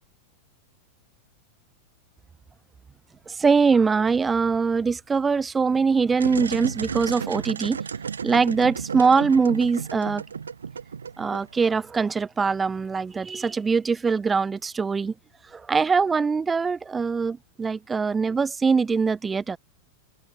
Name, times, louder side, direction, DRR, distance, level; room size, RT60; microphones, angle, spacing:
voice 1, 3.3-7.8 8.2-10.2 11.2-15.1 15.5-19.6, right 5 dB, 15° right, 0.4 m, -22 dB
sound 1, 6.1-12.0, right 6 dB, 70° right, 1.2 m, -33 dB
figure-of-eight pair, 90°, 0 cm